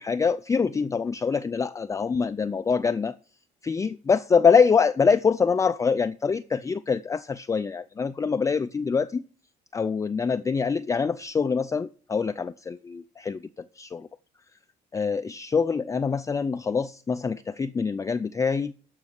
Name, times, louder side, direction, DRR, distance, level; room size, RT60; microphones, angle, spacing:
voice 1, 0.0-3.1 3.6-9.2 9.7-14.1 14.9-18.7, left 5 dB, 20° left, 0.4 m, -25 dB
13.0 x 5.4 x 6.4 m
cardioid pair, 110°, 17 cm